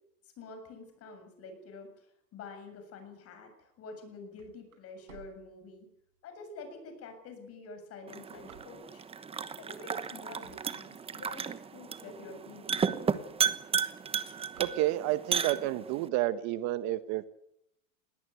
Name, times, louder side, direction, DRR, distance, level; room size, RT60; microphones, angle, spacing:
voice 1, 0.2-5.9 6.2-9.0 9.6-12.9, left 3 dB, 35° left, 7 dB, 7.3 m, -47 dB
sound 1, 3.9-6.2 6.7-6.8 7.5-9.2 9.8-10.0 10.3-11.9 12.4-12.5 12.7-12.8 13.1-13.4 13.7-15.3, right 7 dB, 70° right, 6.1 m, -57 dB
sound 2, 8.1-16.1, right 6 dB, 15° right, 1.1 m, -34 dB
voice 2, 14.6-17.3, right 15 dB, 40° right, 13 dB, 1.1 m, -30 dB
21.0 x 18.0 x 9.3 m, 0.78 s
supercardioid pair, 130°, 42 cm